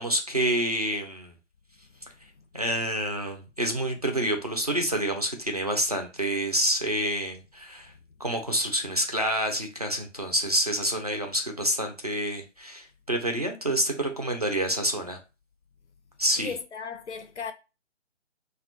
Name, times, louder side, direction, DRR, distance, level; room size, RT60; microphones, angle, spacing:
voice 1, 0.0-1.3 2.5-7.9 8.2-15.2 16.2-16.6, right 1 dB, 35° right, 0.4 m, -28 dB
voice 2, 16.4-17.5, left 6 dB, 65° left, 0.5 m, -36 dB
2.1 x 2.1 x 2.7 m
figure-of-eight pair, 150°, 37 cm